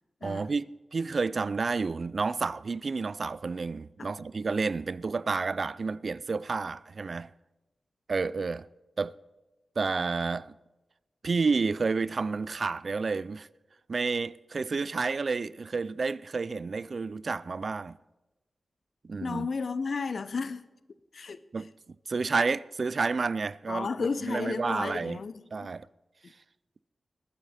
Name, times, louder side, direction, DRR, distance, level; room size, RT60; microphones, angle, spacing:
voice 1, 0.2-7.3 8.1-8.7 9.0-9.1 9.8-10.5 11.2-13.5 13.9-18.0 19.0-19.5 21.5-21.7 22.1-25.2 25.5-25.9, right 4 dB, 55° right, 0.3 m, -30 dB
voice 2, 19.2-20.6 21.1-21.4 23.7-25.4, left 4 dB, 65° left, 0.6 m, -32 dB
22.0 x 8.0 x 4.2 m
wide cardioid pair, 85°, 0 cm